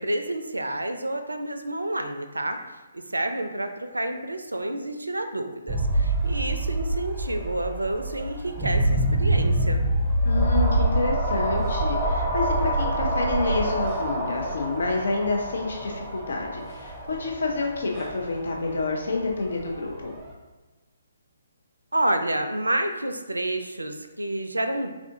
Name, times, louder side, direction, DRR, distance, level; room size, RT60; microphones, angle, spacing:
voice 1, 0.0-2.6 2.9-9.8 21.9-24.9, right 1 dB, 80° right, 7 dB, 0.4 m, -29 dB
sound 1, 5.7-20.3, right 1 dB, 10° right, 0.6 m, -26 dB
voice 2, 10.2-20.1, left 3 dB, 60° left, 0 dB, 0.5 m, -28 dB
3.5 x 2.5 x 3.5 m, 1.2 s
figure-of-eight pair, 135°, 0 cm